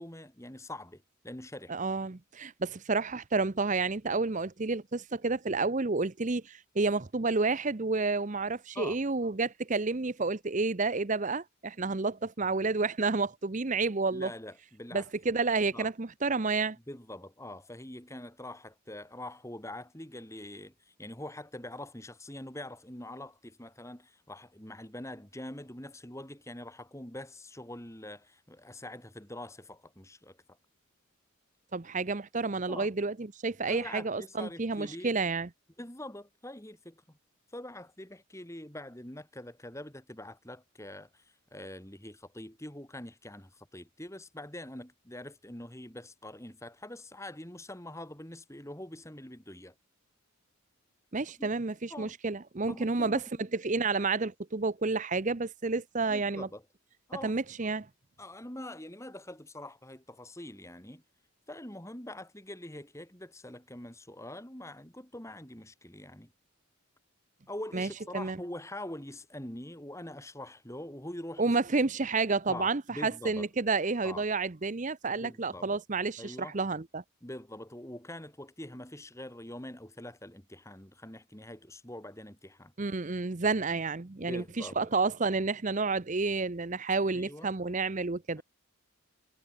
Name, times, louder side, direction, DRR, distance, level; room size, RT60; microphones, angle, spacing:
voice 1, 0.0-1.7 8.7-9.0 11.9-12.0 14.1-15.1 15.7-15.9 16.9-30.4 32.7-32.9 33.7-35.1 35.8-37.2 37.5-41.2 41.5-49.7 51.4-51.5 51.9-52.2 52.7-53.3 56.1-56.6 57.1-57.4 58.2-61.0 61.5-66.3 67.5-71.6 72.5-73.5 74.0-74.2 75.1-75.8 76.2-76.6 77.2-82.7 84.2-84.9 87.1-87.5 88.4-88.5, left 1 dB, 15° left, 2.8 m, -44 dB
voice 2, 1.7-14.3 14.9-16.8 31.7-35.5 51.1-56.5 57.2-57.9 67.7-67.9 68.1-68.4 71.4-77.0 82.8-88.4, right 3 dB, 35° right, 0.7 m, -30 dB
head